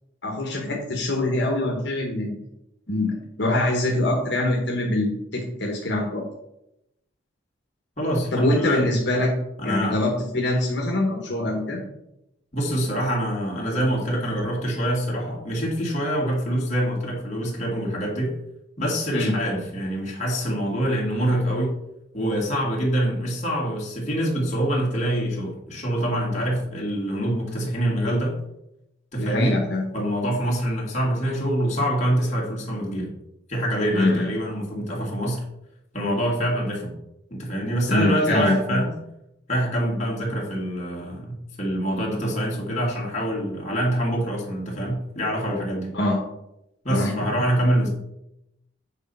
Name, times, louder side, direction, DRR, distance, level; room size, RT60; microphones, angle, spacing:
voice 1, 0.2-2.4 2.9-6.2 8.3-9.3 9.6-11.8 19.1-19.3 29.2-29.8 33.9-34.3 37.9-38.8 45.9-46.2 46.9-47.2, left 1 dB, 65° left, -1 dB, 1.3 m, -24 dB
voice 2, 8.0-8.8 9.6-10.0 12.5-18.4 18.8-21.8 22.1-28.4 29.1-29.5 29.9-33.1 33.5-35.4 35.9-36.9 37.3-38.9 39.5-45.9 46.8-47.9, equal, 35° left, -3 dB, 2.3 m, -25 dB
8.3 x 4.2 x 5.6 m, 0.84 s
head